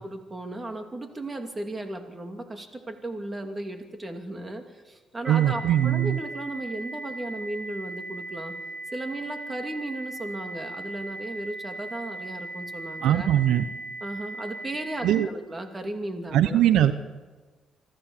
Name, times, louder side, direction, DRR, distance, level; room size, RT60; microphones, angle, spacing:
voice 1, 0.0-8.6 8.9-13.3 14.0-16.6, right 1 dB, 25° right, 5 dB, 2.7 m, -35 dB
sound 1, 5.2-15.2, right 2 dB, 40° right, 4.5 m, -38 dB
voice 2, 5.3-6.2 13.0-13.6 15.0-15.3 16.3-16.9, right 11 dB, 85° right, 12 dB, 0.8 m, -21 dB
25.0 x 14.0 x 7.4 m, 1.3 s
cardioid pair, 90°, 0 cm